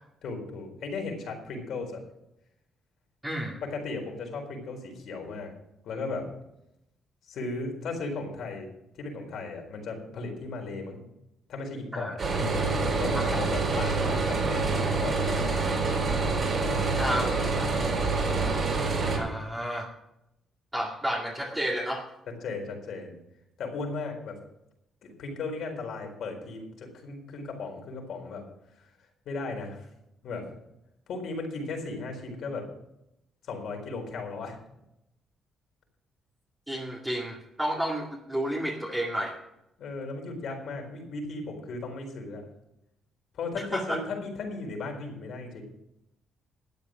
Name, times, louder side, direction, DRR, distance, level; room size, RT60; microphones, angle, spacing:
voice 1, 0.2-2.0 3.6-5.5 5.8-6.3 7.3-8.7 9.0-11.0 11.5-15.5 16.6-17.2 17.6-18.7 22.4-23.2 23.6-24.4 25.0-28.4 28.8-28.9 29.3-29.9 30.2-30.5 31.1-32.6 33.4-34.6 39.8-42.4 43.3-45.6, left 3 dB, 70° left, 2 dB, 4.2 m, -36 dB
voice 2, 3.2-3.6 11.9-12.2 13.1-13.4 17.0-17.3 19.2-19.9 20.7-22.0 36.7-39.4 43.6-44.0, equal, 10° right, -2 dB, 2.1 m, -31 dB
sound 1, 12.2-19.2, right 3 dB, 45° right, 4.4 m, -26 dB
12.0 x 8.6 x 6.4 m, 0.84 s
cardioid pair, 90°, 0 cm